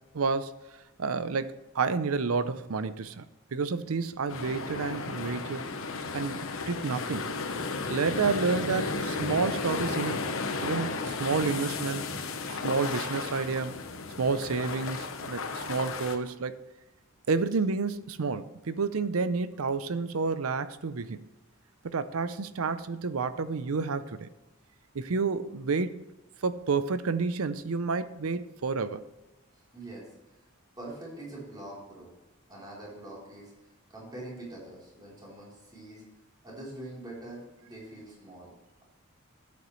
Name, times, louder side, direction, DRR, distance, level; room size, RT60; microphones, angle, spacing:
voice 1, 0.1-0.6 1.0-3.2 3.5-5.7 6.1-6.4 6.7-7.3 7.9-10.2 10.6-12.1 12.5-13.8 14.2-16.6 17.3-21.3 21.8-24.3 24.9-26.1 26.4-29.0, right 4 dB, 80° right, 14 dB, 0.6 m, -30 dB
sound 1, 4.3-16.2, left 4 dB, 70° left, 1.0 m, -34 dB
voice 2, 29.5-30.1 30.8-32.1 32.5-36.0 36.4-38.5, right 1 dB, 20° right, -5 dB, 3.6 m, -44 dB
13.5 x 8.5 x 3.2 m, 1.1 s
head